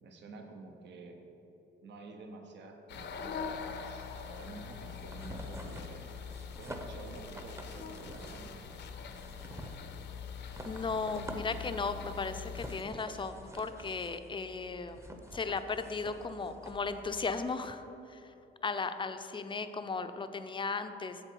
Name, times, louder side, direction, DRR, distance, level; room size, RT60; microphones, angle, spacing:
voice 1, 0.0-1.2 1.8-6.1 6.6-8.7, right 3 dB, 65° right, 4 dB, 1.0 m, -49 dB
sound 1, 2.9-12.8, left 6 dB, 60° left, 0.7 m, -43 dB
sound 2, 4.8-17.4, equal, 15° right, 0.8 m, -48 dB
voice 2, 10.7-15.1 15.3-18.3 18.6-21.2, left 4 dB, 25° left, 9 dB, 0.5 m, -36 dB
7.7 x 7.3 x 4.6 m, 2.9 s
cardioid pair, 90°, 20 cm